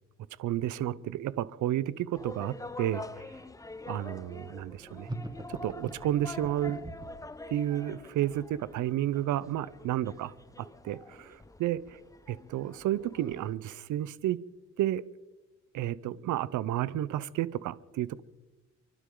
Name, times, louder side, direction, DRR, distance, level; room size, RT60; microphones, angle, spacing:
voice 1, 0.4-3.3 3.9-5.1 5.5-6.8 7.5-12.0 12.3-14.4 14.8-15.0 15.7-18.2, right 12 dB, 80° right, 17 dB, 0.7 m, -31 dB
sound 1, 2.1-13.6, left 2 dB, 10° left, 0.8 m, -46 dB
sound 2, 5.0-7.3, right 2 dB, 15° right, 1.6 m, -41 dB
29.5 x 12.0 x 3.9 m, 1.1 s
cardioid pair, 90°, 30 cm